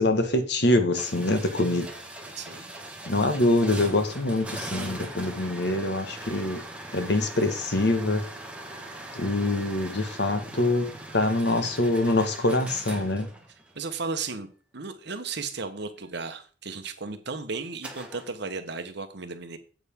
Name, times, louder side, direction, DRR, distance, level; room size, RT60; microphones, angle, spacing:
voice 1, 0.0-1.9 3.0-6.6 6.9-8.2 9.1-10.9 11.1-13.3, left 2 dB, 65° left, 8 dB, 1.6 m, -24 dB
sound 1, 0.9-14.0 17.8-18.3, right 1 dB, 5° right, 1.7 m, -40 dB
voice 2, 2.4-2.7 12.9-13.2 13.7-14.5 14.7-19.6, right 4 dB, 65° right, 9 dB, 1.2 m, -35 dB
8.9 x 8.2 x 3.7 m, 0.38 s
head